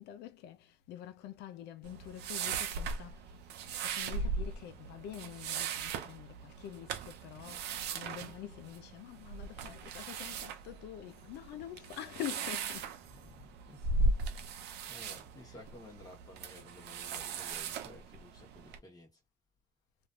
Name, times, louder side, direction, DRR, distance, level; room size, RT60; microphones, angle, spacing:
voice 1, 0.0-13.1 15.4-15.6, left 12 dB, 80° left, 0.5 m, -46 dB
sound 1, 1.8-18.8, right 3 dB, 80° right, 0.7 m, -38 dB
voice 2, 13.0-14.0 14.3-19.2, left 1 dB, 20° left, 1.2 m, -55 dB
3.2 x 2.6 x 2.4 m
cardioid pair, 110°, 17 cm